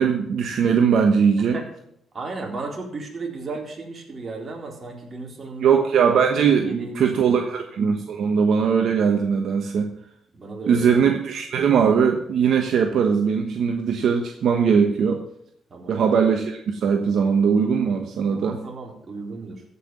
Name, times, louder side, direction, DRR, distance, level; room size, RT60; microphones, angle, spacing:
voice 1, 0.0-1.6 5.6-9.9 10.7-15.2 15.9-18.6, right 6 dB, 65° right, 4 dB, 1.2 m, -20 dB
voice 2, 2.1-5.8 6.6-7.4 10.3-11.1 15.7-16.0 18.3-19.6, right 3 dB, 35° right, 0 dB, 3.9 m, -35 dB
15.0 x 5.7 x 7.6 m, 0.72 s
cardioid pair, 90°, 0 cm